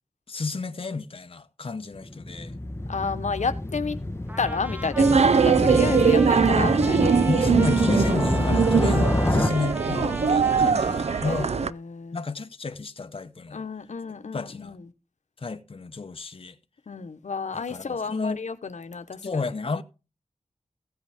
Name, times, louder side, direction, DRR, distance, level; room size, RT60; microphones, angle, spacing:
voice 1, 0.3-2.5 5.7-6.0 7.2-11.5 12.1-13.6 14.3-14.8 15.4-16.6 17.5-18.4 19.2-19.8, left 4 dB, 50° left, 0.8 m, -32 dB
Motorcycle, 1.9-9.5, left 1 dB, 20° left, 1.0 m, -27 dB
voice 2, 2.9-4.0 4.4-7.2 11.3-12.2 13.5-14.8 16.9-19.4, left 5 dB, 90° left, 0.9 m, -31 dB
Trumpet, 4.3-11.7, equal, 15° right, 1.0 m, -37 dB
sound 1, 5.0-11.7, right 5 dB, 65° right, 0.4 m, -21 dB
16.0 x 8.1 x 3.5 m
wide cardioid pair, 70°, 12 cm